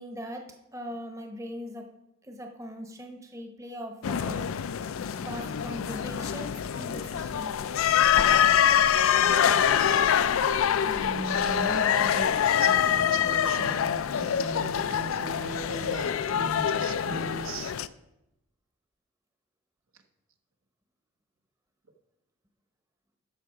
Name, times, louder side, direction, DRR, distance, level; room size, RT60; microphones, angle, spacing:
voice 1, 0.0-1.9 2.2-4.5 5.2-7.6, equal, 15° right, 3 dB, 0.9 m, -40 dB
sound 1, 4.0-17.9, left 9 dB, 75° left, 0.4 m, -25 dB
voice 2, 10.9-17.7, right 2 dB, 75° right, 6 dB, 1.0 m, -38 dB
13.0 x 5.8 x 4.8 m, 0.91 s
head